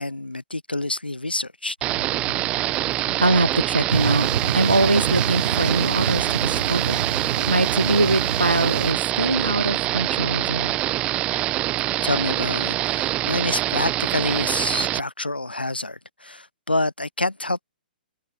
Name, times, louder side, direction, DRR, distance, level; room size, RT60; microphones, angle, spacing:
voice 1, 0.0-1.8 12.0-17.6, left 2 dB, 80° left, 7.7 m, -27 dB
sound 1, 1.8-15.0, right 15 dB, 20° right, 1.0 m, -25 dB
voice 2, 3.2-4.3 4.5-10.8, right 2 dB, 80° right, 3.8 m, -23 dB
sound 2, 3.9-8.9, right 8 dB, 55° right, 3.1 m, -28 dB
figure-of-eight pair, 120°, 5 cm